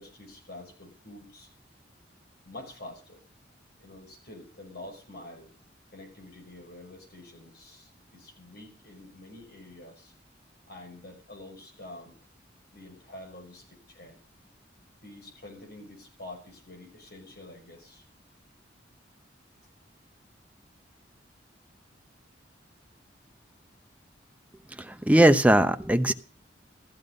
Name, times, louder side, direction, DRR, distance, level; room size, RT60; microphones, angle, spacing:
voice 1, 0.0-1.5 2.4-3.2 3.8-5.5 5.9-10.1 10.7-12.2 12.7-14.2 15.0-18.0, left 1 dB, 60° left, 6.2 m, -47 dB
voice 2, 24.8-26.1, right 1 dB, 10° right, 0.8 m, -20 dB
14.5 x 14.0 x 5.4 m
head